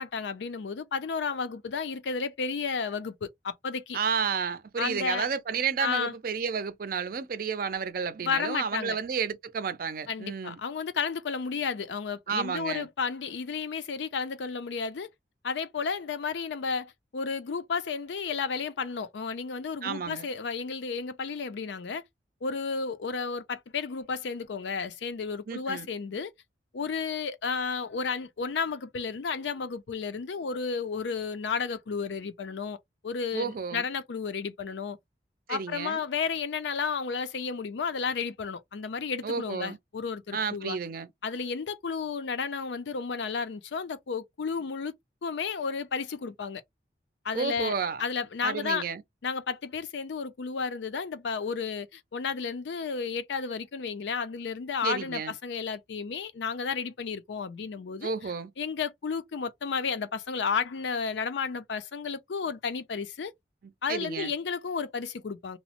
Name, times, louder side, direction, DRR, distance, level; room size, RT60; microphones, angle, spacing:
voice 1, 0.0-4.0 4.8-5.3 5.8-6.1 8.2-9.0 10.1-15.1 15.4-22.0 22.4-26.3 26.7-32.8 33.0-35.0 35.5-40.8 41.2-44.9 45.2-46.6 47.2-47.7 48.0-48.9 49.2-58.1 58.6-63.3 63.8-65.6, left 5 dB, 85° left, 0.5 m, -32 dB
voice 2, 3.9-10.6 12.3-12.9 19.8-20.3 25.5-25.9 33.3-33.9 35.5-36.0 39.2-39.8 40.3-41.1 47.3-48.0 48.4-49.0 54.8-55.3 58.0-58.5 63.6-64.3, right 6 dB, 55° right, 0.4 m, -31 dB
2.9 x 2.0 x 2.8 m
head